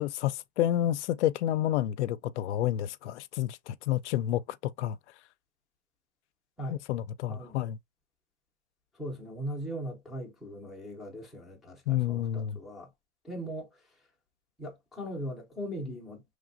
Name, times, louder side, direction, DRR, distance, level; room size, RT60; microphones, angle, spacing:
voice 1, 0.0-5.0 6.7-7.8 11.9-12.6, left 12 dB, 75° left, 0.5 m, -29 dB
voice 2, 7.3-7.6 8.9-12.9 13.2-14.0 14.6-16.2, equal, ahead, 0.5 m, -39 dB
5.0 x 3.3 x 2.5 m
supercardioid pair, 165°, 35 cm